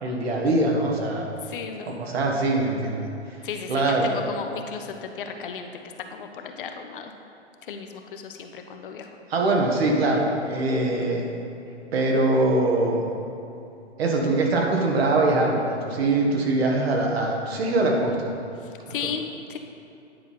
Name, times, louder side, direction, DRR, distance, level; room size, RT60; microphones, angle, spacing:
voice 1, 0.0-1.3 2.0-3.1 3.7-4.1 9.3-11.3 11.9-13.1 14.0-18.4, right 2 dB, 60° right, 0 dB, 1.6 m, -23 dB
voice 2, 1.4-2.0 3.4-5.7 6.1-7.1 7.6-9.2 18.6-19.2 19.5-19.6, left 6 dB, 50° left, 5 dB, 0.7 m, -35 dB
9.6 x 4.1 x 5.5 m, 2.8 s
hypercardioid pair, 125°, 35 cm